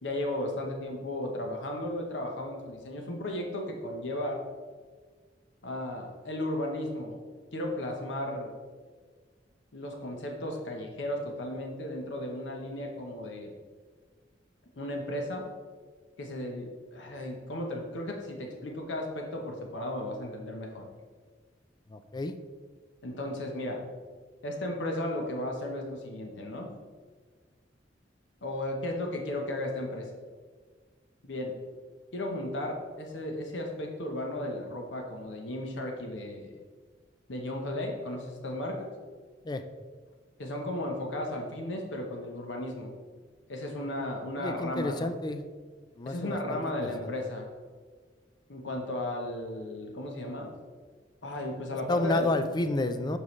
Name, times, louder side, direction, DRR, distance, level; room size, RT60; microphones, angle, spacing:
voice 1, 0.0-4.4 5.6-7.2 7.5-8.5 9.7-13.5 14.8-15.5 16.2-20.9 23.0-23.8 24.4-26.7 28.4-30.1 31.2-31.6 32.1-36.5 37.3-38.9 40.4-42.9 43.5-45.1 46.1-47.5 48.5-50.6 51.2-52.4, left 1 dB, 90° left, 2 dB, 0.9 m, -35 dB
voice 2, 21.9-22.3 39.4-39.6 44.4-45.4 46.0-47.1 51.9-53.2, left 2 dB, 25° left, 9 dB, 0.4 m, -30 dB
7.4 x 4.9 x 3.1 m, 1.5 s
head